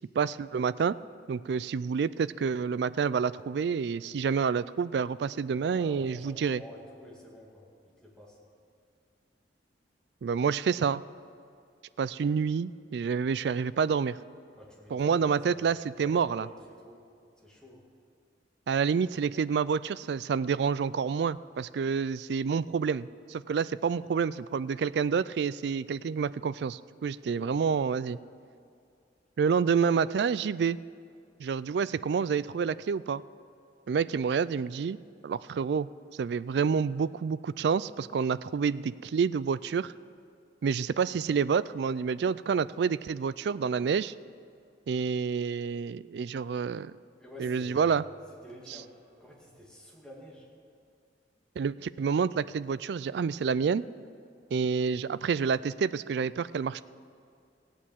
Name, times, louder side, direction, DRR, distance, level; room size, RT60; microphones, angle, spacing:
voice 1, 0.2-1.0 1.3-6.6 10.2-11.0 12.0-14.2 14.9-16.5 18.7-28.2 29.4-30.8 31.4-33.2 33.9-35.0 35.2-35.9 36.2-39.9 40.6-44.1 44.9-46.9 47.4-48.0 48.7-48.8 51.6-53.8 54.5-56.8, right 6 dB, 65° right, 17 dB, 0.3 m, -28 dB
voice 2, 5.5-7.7 8.0-8.4 14.6-15.2 15.5-15.6 16.0-16.6 16.8-17.0 17.4-17.8 27.2-27.5 47.2-48.1 48.4-48.9 49.2-50.5, equal, 5° left, -4 dB, 2.3 m, -49 dB
16.0 x 8.7 x 7.2 m, 2.4 s
head